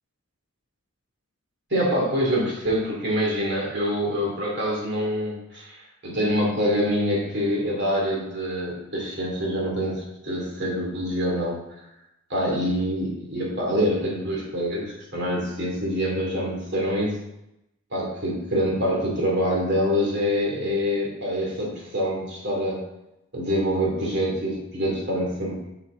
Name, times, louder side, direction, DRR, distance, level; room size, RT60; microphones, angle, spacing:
voice 1, 1.7-5.8 6.0-11.6 12.3-17.2 17.9-22.8 23.3-25.7, equal, 55° right, -3 dB, 2.6 m, -25 dB
6.8 x 6.5 x 3.8 m, 0.88 s
head